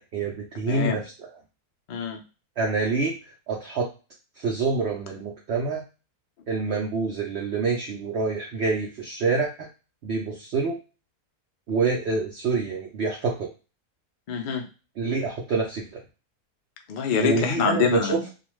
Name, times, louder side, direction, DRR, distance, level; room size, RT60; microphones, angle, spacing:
voice 1, 0.0-1.3 2.6-3.1 3.5-3.9 4.4-5.8 6.5-9.7 10.0-10.8 11.7-13.5 15.0-16.0 17.2-18.3, right 4 dB, 65° right, -1 dB, 0.6 m, -26 dB
voice 2, 0.7-1.0 1.9-2.2 14.3-14.7 16.9-18.2, left 6 dB, 80° left, 4 dB, 0.4 m, -25 dB
2.4 x 2.3 x 3.1 m, 0.32 s
omnidirectional pair, 1.6 m